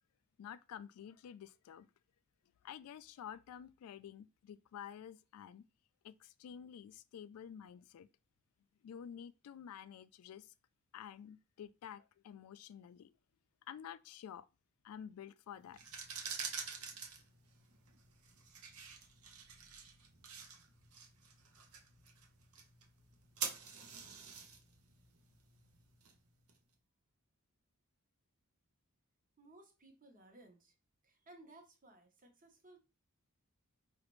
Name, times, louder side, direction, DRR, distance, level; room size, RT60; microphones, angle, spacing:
voice 1, 0.4-1.9 2.6-5.7 6.0-8.1 8.8-10.5 10.9-13.1 13.7-14.5 14.8-16.0, left 8 dB, 80° left, 0.3 m, -50 dB
sound 1, 15.7-26.5, right 6 dB, 90° right, 0.8 m, -47 dB
voice 2, 29.4-30.7 31.0-32.8, right 2 dB, 40° right, 1.0 m, -60 dB
5.0 x 2.4 x 3.0 m
head